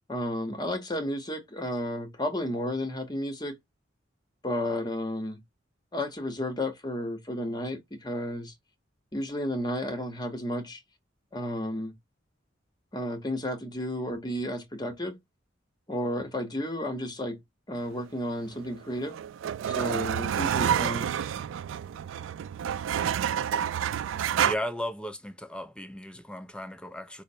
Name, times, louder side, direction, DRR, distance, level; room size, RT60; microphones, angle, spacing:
voice 1, 0.1-3.6 4.4-5.4 5.9-8.5 9.1-10.8 11.3-11.9 12.9-15.2 15.9-17.4 17.7-19.2 19.7-21.1, left 1 dB, 20° left, 0.8 m, -32 dB
sound 1, 18.7-24.5, right 9 dB, 80° right, 0.3 m, -29 dB
voice 2, 24.4-27.2, equal, 5° left, 0.4 m, -36 dB
5.0 x 2.0 x 2.6 m
head